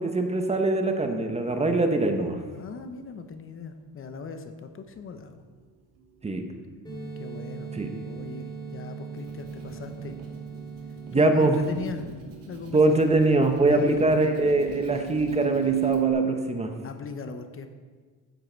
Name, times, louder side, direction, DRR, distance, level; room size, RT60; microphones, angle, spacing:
voice 1, 0.0-2.4 6.2-6.4 7.7-7.9 11.1-11.6 12.7-16.7, right 2 dB, 15° right, 5 dB, 1.1 m, -23 dB
voice 2, 2.5-5.4 7.2-7.7 8.0-10.2 11.1-12.1 12.5-12.8 13.7-14.1 16.8-17.7, left 5 dB, 35° left, 7 dB, 0.9 m, -38 dB
sound 1, 4.9-5.0 8.4-8.5 8.9-9.0 9.3-16.1, right 11 dB, 80° right, 3.5 m, -35 dB
sound 2, 6.8-11.8, right 5 dB, 10° left, 3.6 m, -39 dB
sound 3, 8.9-16.0, right 3 dB, 65° right, 2.9 m, -47 dB
14.5 x 7.7 x 4.6 m, 1.5 s
cardioid pair, 130°, 36 cm